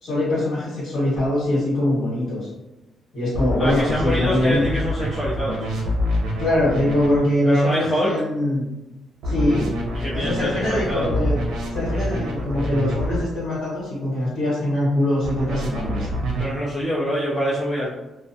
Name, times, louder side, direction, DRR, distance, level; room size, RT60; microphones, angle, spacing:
voice 1, 0.0-2.5 3.1-4.6 6.4-8.7 9.2-9.7 10.1-11.4 11.7-16.1, left 1 dB, 65° left, -9 dB, 1.2 m, -23 dB
sound 1, 1.1-1.2 3.3-7.2 9.2-13.2 15.2-16.5, equal, 90° right, 0.6 m, -26 dB
voice 2, 3.6-5.6 7.4-8.1 10.0-11.1 16.4-17.9, equal, 20° left, -7 dB, 0.4 m, -25 dB
2.3 x 2.3 x 2.6 m, 1.0 s
cardioid pair, 155°, 0 cm